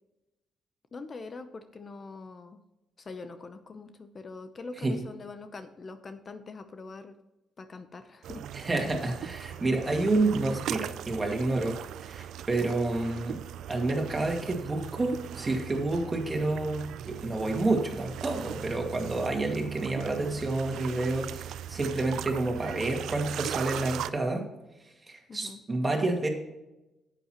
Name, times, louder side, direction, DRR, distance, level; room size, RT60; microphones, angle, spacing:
voice 1, 0.9-2.6 3.0-7.2 7.6-8.5 25.3-25.6, left 3 dB, 40° left, 9 dB, 0.7 m, -43 dB
sound 1, 8.2-24.1, right 10 dB, 80° right, 0.3 m, -39 dB
voice 2, 8.5-13.4 13.7-24.4 25.1-26.3, right 2 dB, 25° right, 2 dB, 2.1 m, -29 dB
11.0 x 8.1 x 3.0 m, 0.98 s
cardioid pair, 90°, 0 cm